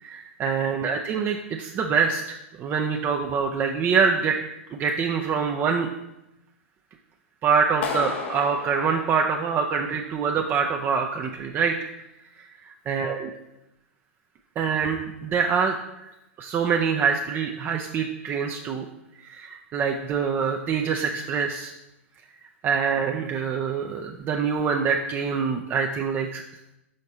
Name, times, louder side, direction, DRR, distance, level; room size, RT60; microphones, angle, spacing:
voice 1, 0.0-4.4 4.7-5.9 7.4-11.7 12.9-13.3 14.6-18.8 19.2-21.7 22.6-26.4, right 6 dB, 30° right, 3 dB, 0.5 m, -25 dB
Clapping, 7.8-9.9, left 5 dB, 65° left, 0.9 m, -33 dB
6.4 x 4.2 x 4.0 m, 0.89 s
hypercardioid pair, 105°, 7 cm